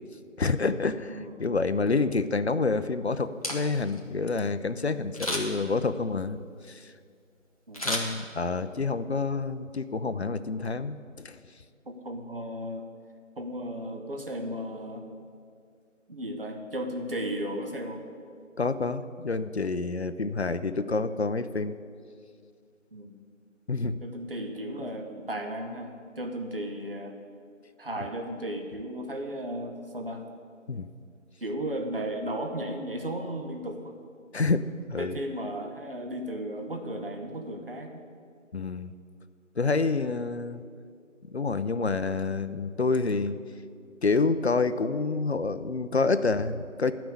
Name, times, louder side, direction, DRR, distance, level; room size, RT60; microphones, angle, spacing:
voice 1, 0.4-6.4 6.7-6.9 7.8-11.4 18.6-21.7 23.7-24.0 30.7-30.9 34.3-35.2 38.5-38.9 39.6-40.6 41.3-43.4 44.0-46.9, left 4 dB, 55° left, 12 dB, 0.6 m, -28 dB
voice 2, 1.1-1.5 7.7-8.1 11.9-12.8 13.4-15.1 16.1-18.0 22.9-23.1 24.0-27.1 27.8-30.2 31.4-34.0 35.0-38.0, right 1 dB, 45° right, 3 dB, 1.1 m, -35 dB
Camera, 3.2-4.0 5.1-5.7 7.7-8.7 9.1-9.2, left 1 dB, 30° left, 1.0 m, -32 dB
11.0 x 6.1 x 8.5 m, 2.2 s
figure-of-eight pair, 175°, 39 cm